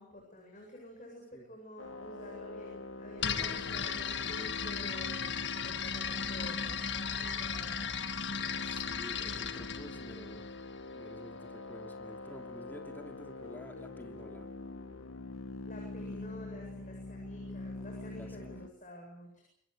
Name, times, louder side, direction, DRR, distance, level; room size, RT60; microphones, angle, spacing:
voice 1, 0.0-7.9 15.6-19.4, left 1 dB, 40° left, 1 dB, 8.0 m, -50 dB
sound 1, 1.8-18.7, left 2 dB, 90° left, 1.9 m, -44 dB
sound 2, 3.2-11.0, left 7 dB, 60° left, 1.6 m, -36 dB
voice 2, 3.3-3.7 4.0-4.5 8.6-10.5 10.9-14.5 16.0-16.2 18.1-18.6, equal, 10° left, 4 dB, 3.0 m, -50 dB
28.0 x 22.0 x 7.0 m, 0.69 s
head